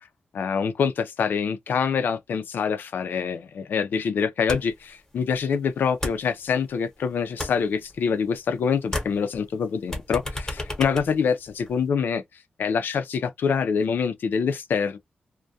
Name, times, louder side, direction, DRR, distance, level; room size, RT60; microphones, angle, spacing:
voice 1, 0.3-12.2 12.6-15.0, left 6 dB, 80° left, 0.5 m, -25 dB
sound 1, 4.5-4.9 5.2-6.9 7.2-8.6 8.8-11.9, left 2 dB, 15° left, 0.9 m, -34 dB
2.3 x 2.2 x 2.6 m
wide cardioid pair, 105°, 3 cm